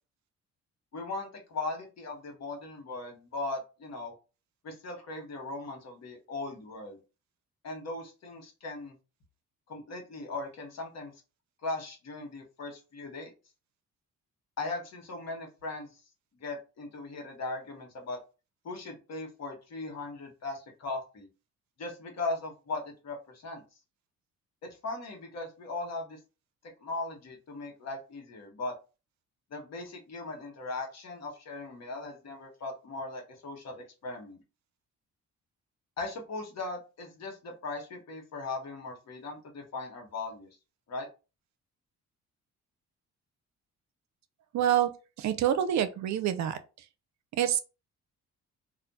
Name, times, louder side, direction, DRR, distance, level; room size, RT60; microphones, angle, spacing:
voice 1, 0.9-4.2 4.6-7.0 7.6-9.0 9.7-11.1 11.6-13.3 14.6-16.0 16.4-18.2 18.6-21.3 21.8-23.6 24.6-26.2 26.8-28.8 29.5-34.4 36.0-40.5 40.9-41.1, left 3 dB, 60° left, 1.1 m, -38 dB
voice 2, 44.5-44.9 45.2-46.6 47.4-47.6, right 10 dB, 65° right, 0.5 m, -26 dB
2.4 x 2.2 x 4.0 m
cardioid pair, 90°, 30 cm